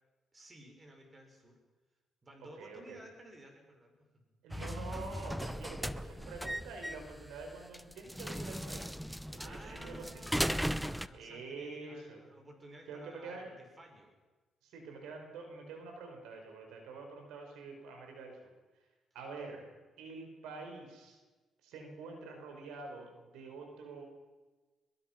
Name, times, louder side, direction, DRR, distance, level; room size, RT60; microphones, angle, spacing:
voice 1, 0.3-1.6 2.2-4.0 9.4-14.1, right 1 dB, 25° right, 3 dB, 6.3 m, -55 dB
voice 2, 2.6-3.0 4.4-8.9 9.3-10.2 11.1-12.3 12.9-13.5 14.6-18.4 19.1-21.2 21.6-24.0, right 3 dB, 90° right, 3 dB, 5.3 m, -46 dB
sound 1, 4.5-11.1, equal, ahead, 0.8 m, -37 dB
23.0 x 22.0 x 6.1 m, 1.2 s
cardioid pair, 90°, 0 cm